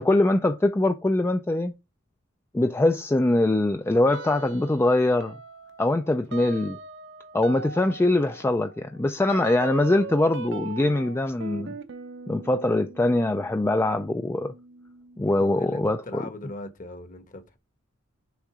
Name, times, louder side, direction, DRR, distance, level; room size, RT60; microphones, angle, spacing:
voice 1, 0.0-1.7 2.5-5.4 5.8-6.8 7.3-11.8 12.3-14.5 15.2-16.2, left 2 dB, 10° left, 0.3 m, -23 dB
sound 1, 4.1-4.9 5.2-15.5, right 4 dB, 55° right, 0.7 m, -40 dB
voice 2, 9.8-10.1 15.4-17.6, left 2 dB, 40° left, 1.0 m, -40 dB
6.3 x 3.7 x 4.7 m
head